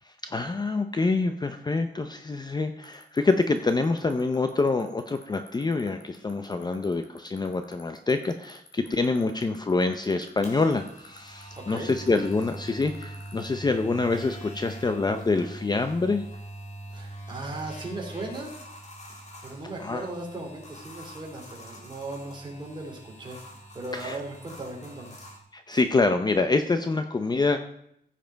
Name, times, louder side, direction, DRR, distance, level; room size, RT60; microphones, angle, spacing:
voice 1, 0.1-16.2 19.8-20.0 23.9-24.2 25.5-27.6, left 3 dB, 20° left, 8 dB, 0.6 m, -26 dB
sound 1, 2.8-13.5, left 6 dB, 60° left, 2.6 m, -50 dB
sound 2, 10.4-25.4, right 1 dB, 40° left, 2.6 m, -43 dB
voice 2, 11.6-11.9 16.9-18.5 19.4-23.4 23.7-25.2 25.7-25.8, right 2 dB, 25° right, 0 dB, 3.1 m, -37 dB
15.5 x 7.5 x 4.5 m, 0.72 s
wide cardioid pair, 155°, 19 cm